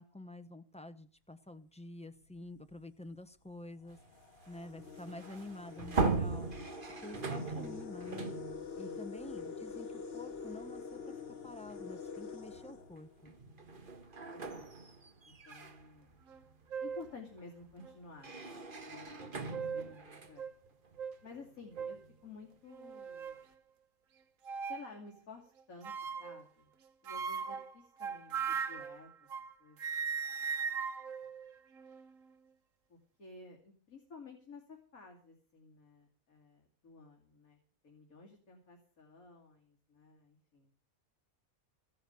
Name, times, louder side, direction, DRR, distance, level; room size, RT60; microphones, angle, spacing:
voice 1, 0.0-4.0 4.5-6.5 7.0-8.3 8.7-13.3, left 1 dB, 5° left, 9 dB, 0.6 m, -49 dB
sound 1, 2.2-2.4 3.3-3.4 3.8-13.6, left 5 dB, 45° left, 1.5 m, -46 dB
sound 2, 3.9-10.2 10.6-10.8 11.9-12.1 12.5-22.3, right 3 dB, 40° right, 1.5 m, -40 dB
voice 2, 14.3-16.2 16.8-18.6 18.8-20.5 21.2-23.4 24.7-25.9 26.2-26.7 27.0-29.1 29.6-29.8 32.9-37.6 37.8-40.7, left 4 dB, 75° left, 0 dB, 2.9 m, -53 dB
sound 3, 16.3-16.4 16.7-17.1 17.8-17.9 19.2-20.0 20.4-20.5 21.0-21.2 21.8-22.0 22.7-23.4 24.4-24.9 25.8-26.4 27.1-29.5 29.8-32.1, right 6 dB, 65° right, 1.3 m, -39 dB
14.5 x 9.9 x 6.8 m, 0.42 s
omnidirectional pair, 1.5 m